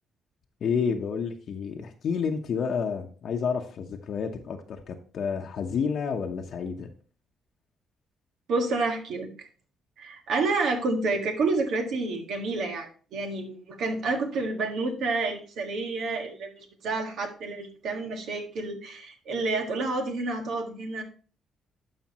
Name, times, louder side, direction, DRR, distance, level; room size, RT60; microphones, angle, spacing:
voice 1, 0.6-6.9, left 6 dB, 60° left, 3 dB, 0.9 m, -30 dB
voice 2, 8.5-9.5 10.0-21.0, right 3 dB, 75° right, 4 dB, 1.7 m, -29 dB
11.5 x 5.1 x 3.0 m, 0.39 s
cardioid pair, 90°, 0 cm